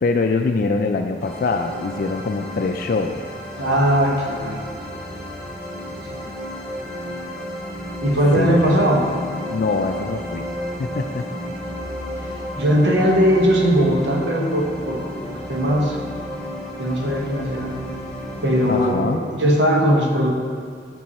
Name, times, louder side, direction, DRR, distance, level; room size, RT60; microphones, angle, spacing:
voice 1, 0.0-3.2 8.3-8.8 9.5-10.4 10.8-11.2 18.7-19.2, left 3 dB, 50° left, 4 dB, 0.3 m, -23 dB
sound 1, 1.2-18.9, equal, 5° left, 1.9 m, -32 dB
voice 2, 3.6-4.9 6.0-6.3 8.0-9.2 12.6-16.0 16.8-17.8 18.4-20.3, equal, 90° right, 0 dB, 1.1 m, -19 dB
7.5 x 5.4 x 4.2 m, 2.2 s
head